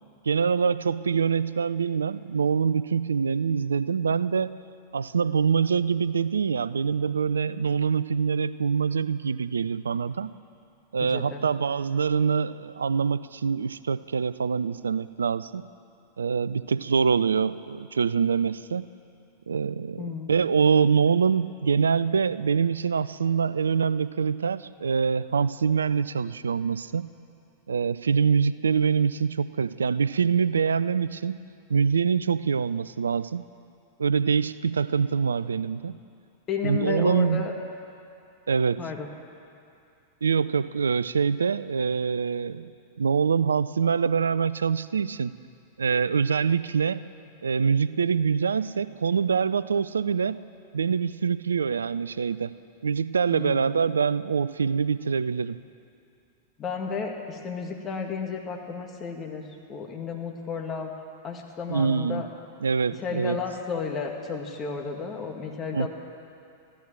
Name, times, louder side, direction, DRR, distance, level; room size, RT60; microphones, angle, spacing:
voice 1, 0.3-4.6 4.9-10.3 10.9-15.7 16.2-18.9 19.5-27.1 27.7-31.4 31.7-33.4 34.0-35.9 36.6-37.4 38.5-38.8 40.2-42.7 43.0-45.3 45.8-47.1 47.4-50.4 50.7-52.5 52.8-55.6 61.7-62.2 62.6-63.4 65.7-65.9, right 6 dB, 75° right, 17 dB, 0.4 m, -25 dB
voice 2, 11.0-11.4 20.0-20.3 36.5-37.5 38.8-39.1 53.3-53.7 56.6-60.9 61.2-62.3 63.0-65.9, left 5 dB, 30° left, 2 dB, 2.1 m, -33 dB
15.0 x 11.5 x 7.4 m, 2.5 s
figure-of-eight pair, 95°, 0 cm